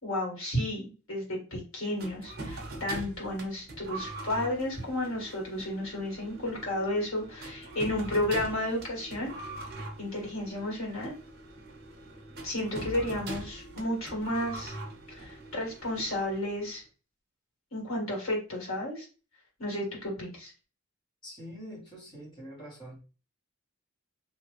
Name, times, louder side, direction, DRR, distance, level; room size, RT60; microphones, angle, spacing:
voice 1, 0.0-9.3 10.0-11.1 12.4-14.7 15.2-16.8 17.7-19.0 19.6-20.5, left 1 dB, 85° left, -1 dB, 1.7 m, -32 dB
sound 1, 2.0-16.7, right 2 dB, 50° right, 0.8 m, -42 dB
voice 2, 21.2-23.0, equal, 20° left, -6 dB, 1.3 m, -45 dB
3.0 x 2.5 x 3.1 m, 0.34 s
head